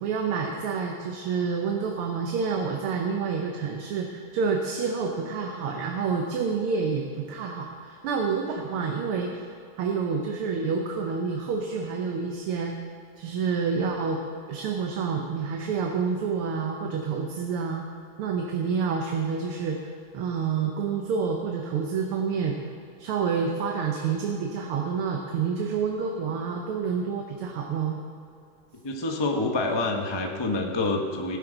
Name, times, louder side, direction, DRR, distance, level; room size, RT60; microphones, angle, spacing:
voice 1, 0.0-9.5 9.8-12.7 13.2-14.2 14.5-17.8 18.2-19.8 20.1-22.6 23.0-28.0, right 5 dB, 80° right, 2 dB, 1.8 m, -28 dB
voice 2, 28.8-31.4, left 2 dB, 35° left, 2 dB, 0.4 m, -27 dB
17.5 x 10.5 x 3.9 m, 2.5 s
omnidirectional pair, 2.4 m